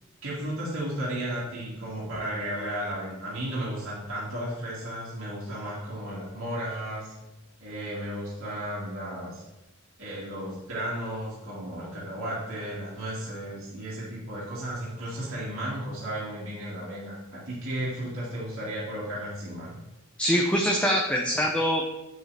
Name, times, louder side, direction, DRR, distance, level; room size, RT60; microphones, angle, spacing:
voice 1, 0.2-7.1 7.6-9.4 10.0-19.8, right 1 dB, 70° right, -8 dB, 2.3 m, -34 dB
voice 2, 20.2-21.9, equal, 5° left, 0 dB, 0.6 m, -24 dB
8.0 x 6.2 x 3.4 m, 1.0 s
head